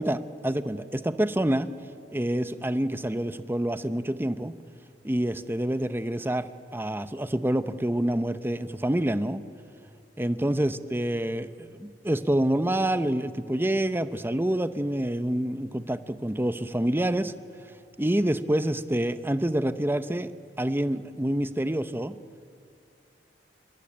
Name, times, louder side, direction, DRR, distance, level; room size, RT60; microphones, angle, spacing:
voice 1, 0.0-1.7 2.1-4.6 5.0-6.5 6.7-9.4 10.2-17.3 18.0-20.3 20.6-22.2, right 1 dB, 15° right, 12 dB, 0.8 m, -27 dB
28.0 x 24.0 x 8.7 m, 2.3 s
head